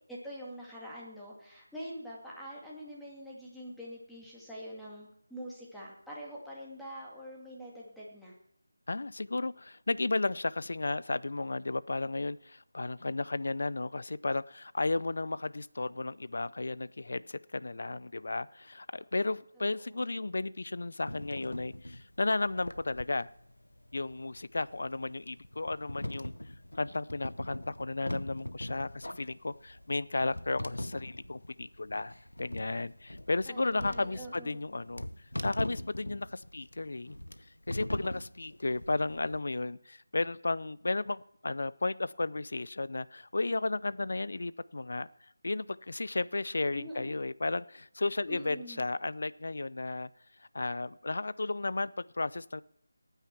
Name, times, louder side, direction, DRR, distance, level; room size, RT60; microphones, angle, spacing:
voice 1, 0.1-8.3 19.8-20.1 33.5-34.6 46.7-47.1 48.3-48.8, equal, ahead, -7 dB, 2.1 m, -45 dB
voice 2, 8.9-23.3 23.9-26.3 26.8-32.1 32.4-35.0 35.4-37.2 37.7-45.1 45.4-50.1 50.5-52.6, left 2 dB, 60° left, 18 dB, 0.5 m, -34 dB
sound 1, 21.1-39.4, left 1 dB, 90° left, 0.8 m, -42 dB
18.0 x 9.1 x 4.5 m, 0.72 s
figure-of-eight pair, 165°, 0 cm